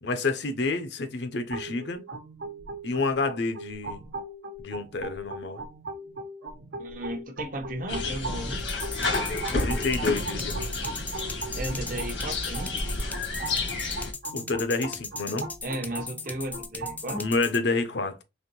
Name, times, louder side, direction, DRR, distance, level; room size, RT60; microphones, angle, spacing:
voice 1, 0.0-2.0 2.8-4.0 4.6-5.6 9.6-10.7 14.3-15.5 17.2-18.2, left 3 dB, 65° left, 0.7 m, -29 dB
sound 1, 1.5-17.3, right 2 dB, 85° right, 1.1 m, -39 dB
voice 2, 6.8-8.7 11.5-12.7 15.6-17.3, right 1 dB, 45° right, 0.7 m, -35 dB
sound 2, 7.9-14.1, left 2 dB, 90° left, 1.7 m, -30 dB
sound 3, 8.6-17.6, left 3 dB, 10° left, 0.3 m, -38 dB
4.2 x 3.0 x 3.0 m
head